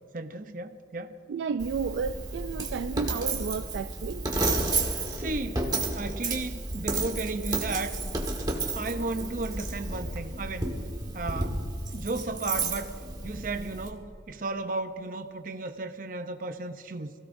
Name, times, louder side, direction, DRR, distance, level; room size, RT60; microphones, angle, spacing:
voice 1, 0.1-1.2 4.7-5.7 5.9-8.0 8.7-10.7 11.1-11.6 11.9-12.9 13.2-17.1, right 3 dB, 50° right, 8 dB, 0.6 m, -34 dB
voice 2, 1.3-4.3, right 5 dB, 85° right, 10 dB, 0.3 m, -32 dB
Coin (dropping), 1.6-13.9, right 2 dB, 20° right, 1.4 m, -32 dB
23.5 x 16.5 x 2.6 m, 2.6 s
head